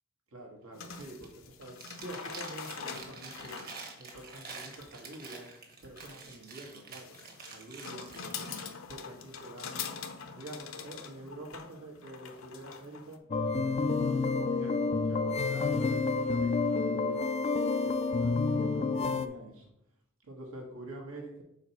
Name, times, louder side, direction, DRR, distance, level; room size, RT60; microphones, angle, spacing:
voice 1, 0.3-3.6 4.0-5.5 5.8-7.1 7.5-8.6 8.9-9.8 10.3-13.2 13.7-17.4 17.7-19.7 20.2-21.4, right 1 dB, 80° right, 0 dB, 1.5 m, -47 dB
sound 1, 0.7-13.2, left 6 dB, 70° left, 0.7 m, -44 dB
Chewing mastication, 0.8-1.3 1.6-8.6, right 4 dB, 45° right, 1.3 m, -47 dB
sound 2, 13.3-19.3, left 4 dB, 30° left, 0.3 m, -29 dB
4.9 x 4.1 x 5.8 m, 0.77 s
head